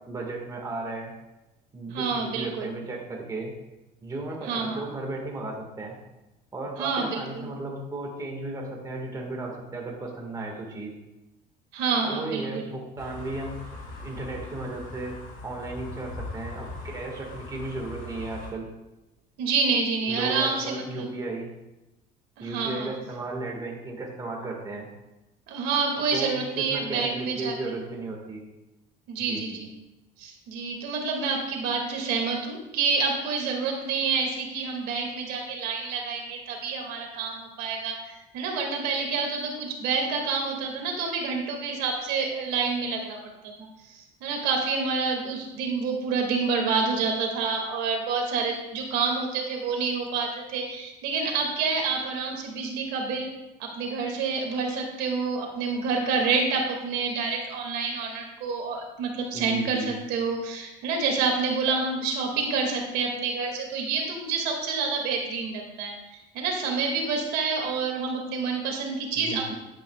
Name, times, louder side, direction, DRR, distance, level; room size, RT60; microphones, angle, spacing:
voice 1, 0.1-1.1 1.7-3.5 4.0-6.0 6.5-10.9 12.0-13.6 14.0-18.7 20.1-21.5 22.4-24.9 26.1-28.4 29.2-29.6 59.3-59.9 69.2-69.5, right 2 dB, 20° right, -1 dB, 1.7 m, -35 dB
voice 2, 1.9-2.7 4.4-4.8 6.8-7.5 11.7-12.6 19.4-21.1 22.4-22.9 25.5-27.6 29.1-29.7 30.2-43.2 43.4-53.3 53.6-69.5, right 4 dB, 75° right, 1 dB, 2.2 m, -28 dB
sound 1, 13.0-18.5, left 2 dB, 55° left, 2.7 m, -40 dB
10.5 x 9.7 x 2.3 m, 0.98 s
cardioid pair, 140°, 17 cm